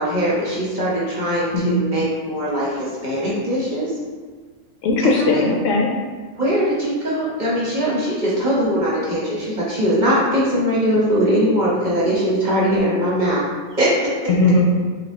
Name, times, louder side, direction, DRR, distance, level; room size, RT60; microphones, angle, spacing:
voice 1, 0.0-3.9 5.0-5.4 6.4-13.4 13.8-14.3, equal, 35° right, -7 dB, 1.0 m, -21 dB
voice 2, 4.8-5.9 14.3-14.7, left 3 dB, 75° left, 0 dB, 0.9 m, -18 dB
4.3 x 2.4 x 3.6 m, 1.4 s
omnidirectional pair, 1.4 m